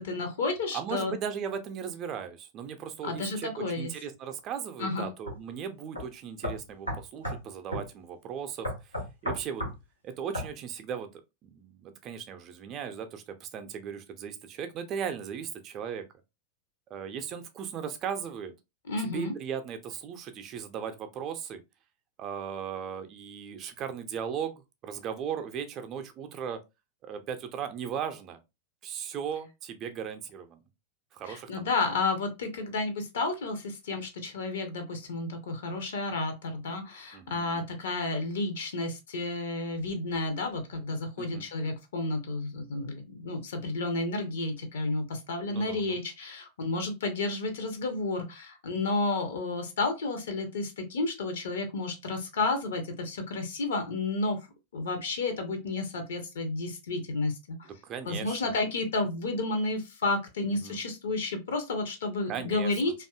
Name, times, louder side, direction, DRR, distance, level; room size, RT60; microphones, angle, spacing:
voice 1, 0.0-1.1 3.0-3.9 4.8-5.1 18.9-19.3 31.3-54.4 54.7-57.7 58.1-62.9, left 3 dB, 60° left, 0.6 m, -31 dB
voice 2, 0.7-9.0 9.2-9.6 10.0-16.0 16.9-18.5 19.0-21.6 22.2-26.6 27.0-28.4 28.8-30.6 31.1-31.7 37.1-37.7 41.2-41.4 45.5-46.0 57.7-58.5 60.4-60.8 62.3-62.8, right 7 dB, 35° right, 0.4 m, -37 dB
sound 1, 5.3-5.4 6.0-6.1 6.4-7.4 7.7-7.9 8.6-9.8 10.3-10.5, equal, 90° left, 1.2 m, -33 dB
2.6 x 2.4 x 2.2 m
figure-of-eight pair, 90°, 0 cm